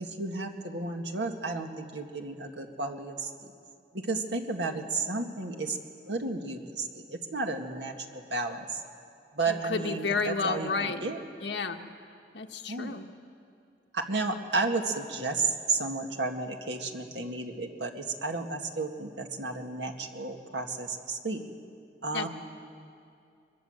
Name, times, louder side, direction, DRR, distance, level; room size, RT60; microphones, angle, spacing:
voice 1, 0.0-3.3 3.9-5.8 6.1-8.8 9.3-11.2 12.7-12.9 13.9-21.4 22.0-22.3, right 3 dB, 80° right, 3 dB, 1.9 m, -32 dB
voice 2, 9.5-11.0 11.4-11.8 12.3-13.0 22.1-22.3, left 4 dB, 80° left, 4 dB, 1.4 m, -31 dB
23.0 x 21.5 x 8.0 m, 2.5 s
head